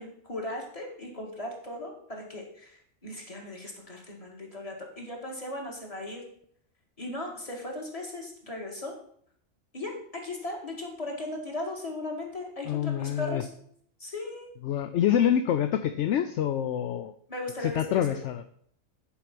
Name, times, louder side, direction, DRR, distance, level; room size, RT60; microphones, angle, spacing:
voice 1, 0.0-6.2 7.0-9.0 9.7-13.5 14.0-14.5 17.3-18.1, left 2 dB, 25° left, 0 dB, 2.0 m, -37 dB
voice 2, 12.7-13.4 14.6-17.1 17.6-18.4, left 10 dB, 65° left, 10 dB, 0.8 m, -26 dB
10.0 x 4.9 x 5.9 m, 0.63 s
omnidirectional pair, 1.4 m